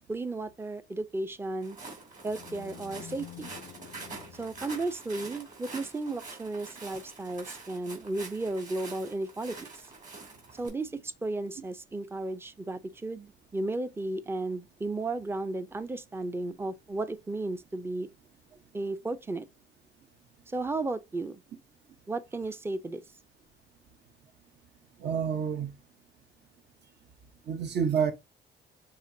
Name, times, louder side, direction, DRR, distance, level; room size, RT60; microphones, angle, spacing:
voice 1, 0.1-1.8 2.2-3.5 4.4-9.9 10.6-18.1 18.7-19.5 20.5-21.4 22.1-23.0, right 2 dB, 10° right, 0.5 m, -34 dB
Walk footsteps, 1.6-10.7, right 3 dB, 40° right, 2.8 m, -46 dB
sound 1, 2.0-5.2, left 12 dB, 55° left, 0.4 m, -49 dB
voice 2, 25.0-25.8 27.5-28.1, right 7 dB, 60° right, 1.0 m, -28 dB
6.7 x 2.9 x 2.7 m
cardioid pair, 90°, 20 cm